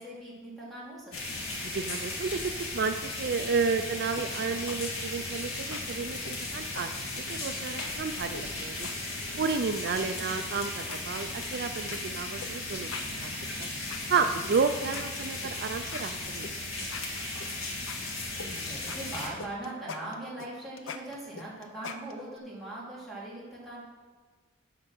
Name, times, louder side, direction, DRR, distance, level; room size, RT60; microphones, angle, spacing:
voice 1, 0.0-1.5 9.9-10.2 18.3-23.8, right 1 dB, ahead, -7 dB, 2.7 m, -41 dB
sound 1, 1.1-19.3, left 2 dB, 90° left, 1.9 m, -36 dB
voice 2, 1.7-6.2 6.5-8.9 9.4-12.9 13.2-13.3 13.6-13.7 14.1-16.5, right 5 dB, 50° right, 8 dB, 0.4 m, -31 dB
sound 2, 4.2-4.8 5.1-5.4 5.7-5.8 6.2-7.5 7.8-7.9 8.3-9.5 9.9-10.5 10.8-11.6 11.9-12.0 12.4-12.5 12.8-14.5 14.8-16.5 16.8-18.5 18.8-22.4, left 5 dB, 65° left, 0.6 m, -43 dB
8.9 x 5.5 x 6.1 m, 1.4 s
head